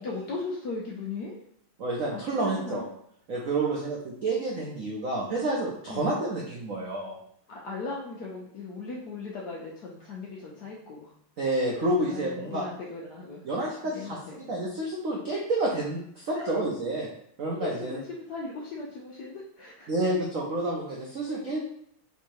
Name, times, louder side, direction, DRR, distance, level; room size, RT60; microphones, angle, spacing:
voice 1, 0.0-1.4 2.1-2.9 3.5-3.9 5.9-6.0 7.5-11.4 11.7-13.4 13.8-14.5 16.3-16.6 17.5-19.9 21.3-21.6, left 3 dB, 75° left, -3 dB, 0.9 m, -38 dB
voice 2, 1.8-2.8 3.3-7.2 11.4-12.6 13.5-17.1 17.4-17.9 19.9-21.6, right 2 dB, 90° right, -3 dB, 0.7 m, -29 dB
3.5 x 3.0 x 4.5 m, 0.68 s
omnidirectional pair, 2.4 m